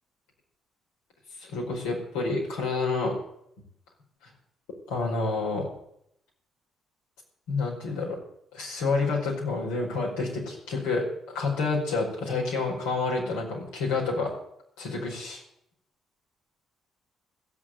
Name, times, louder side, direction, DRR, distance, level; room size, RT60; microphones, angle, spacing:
voice 1, 1.4-3.2 4.9-5.7 7.5-8.2 8.5-14.3 14.8-15.4, left 3 dB, 85° left, -2 dB, 5.0 m, -29 dB
15.5 x 7.9 x 9.2 m, 0.74 s
hypercardioid pair, 50°, 0 cm